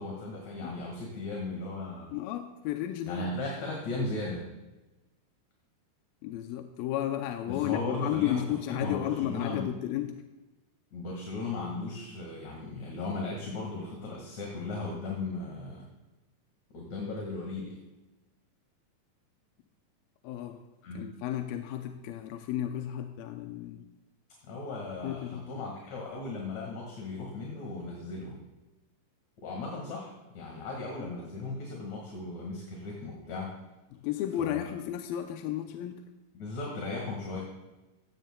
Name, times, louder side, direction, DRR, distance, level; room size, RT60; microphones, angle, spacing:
voice 1, 0.0-2.1 3.1-4.4 7.4-9.7 10.9-15.8 16.7-17.7 20.8-21.1 24.4-28.4 29.4-33.5 34.4-34.7 36.3-37.4, left 3 dB, 55° left, -2 dB, 2.8 m, -36 dB
voice 2, 2.1-3.3 6.2-10.2 20.2-20.6 20.9-23.9 25.0-25.7 34.0-36.0, left 12 dB, 85° left, 6 dB, 2.3 m, -33 dB
16.0 x 15.0 x 2.2 m, 1.1 s
omnidirectional pair, 4.3 m